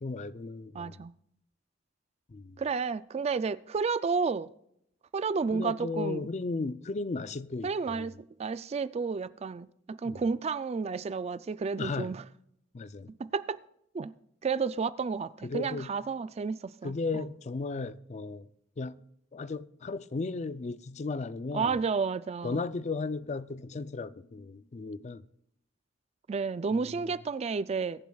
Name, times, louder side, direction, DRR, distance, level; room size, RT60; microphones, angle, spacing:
voice 1, 0.0-1.0 2.3-2.6 5.5-8.1 10.0-10.2 11.8-12.2 12.7-13.1 15.4-15.9 16.8-18.5 18.8-19.0 19.3-21.8 22.4-25.2 26.7-27.2, left 3 dB, 35° left, 0.4 m, -35 dB
voice 2, 0.7-1.1 2.6-4.5 5.1-6.3 7.6-8.1 8.4-12.2 13.2-13.6 13.9-14.1 14.4-17.2 21.5-22.6 26.3-28.1, right 5 dB, 30° right, 0.3 m, -31 dB
21.5 x 10.0 x 2.3 m
head